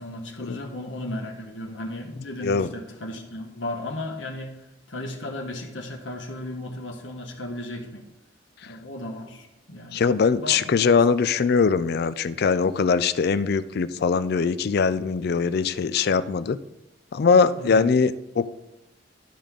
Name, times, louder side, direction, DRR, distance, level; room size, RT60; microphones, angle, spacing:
voice 1, 0.0-4.6 4.9-8.1 8.6-10.1 10.4-11.0 17.6-17.9, left 1 dB, 75° left, 2 dB, 1.4 m, -35 dB
voice 2, 9.9-16.6 17.1-18.5, left 5 dB, 55° left, 14 dB, 0.4 m, -21 dB
12.0 x 5.1 x 3.8 m, 0.90 s
head